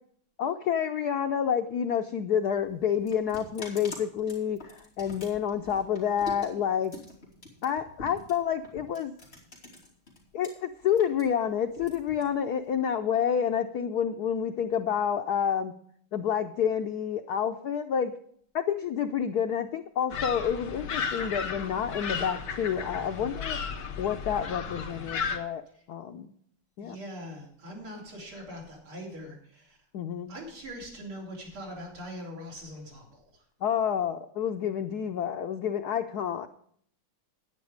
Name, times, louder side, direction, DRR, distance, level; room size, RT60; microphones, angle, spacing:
voice 1, 0.4-6.9 7.6-9.1 10.3-15.7 16.1-18.1 18.5-23.6 24.0-26.3 26.8-27.0 29.9-30.3 33.6-36.5, left 8 dB, 80° left, 7 dB, 0.8 m, -29 dB
sound 1, 2.3-10.5 10.8-12.7, left 2 dB, 25° left, 3.1 m, -46 dB
sound 2, 20.1-25.4, left 6 dB, 60° left, 2.2 m, -34 dB
voice 2, 26.8-29.8 30.3-33.4, equal, 70° right, -2 dB, 4.6 m, -42 dB
10.5 x 9.5 x 5.0 m, 0.63 s
omnidirectional pair, 2.4 m